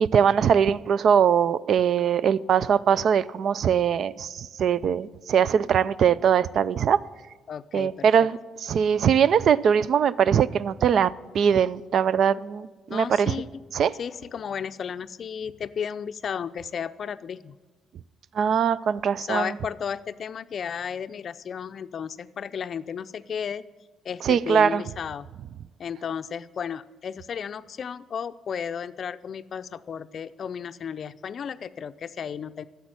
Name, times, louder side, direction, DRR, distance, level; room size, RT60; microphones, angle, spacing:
voice 1, 0.0-7.0 7.7-13.3 13.7-13.9 18.4-19.5 24.2-24.8, right 7 dB, 60° right, 0.4 m, -21 dB
voice 2, 7.5-8.1 12.9-13.7 14.0-17.6 19.2-23.6 24.0-25.3 25.8-32.6, left 7 dB, 55° left, 0.4 m, -33 dB
10.0 x 7.2 x 8.8 m
cardioid pair, 90°, 0 cm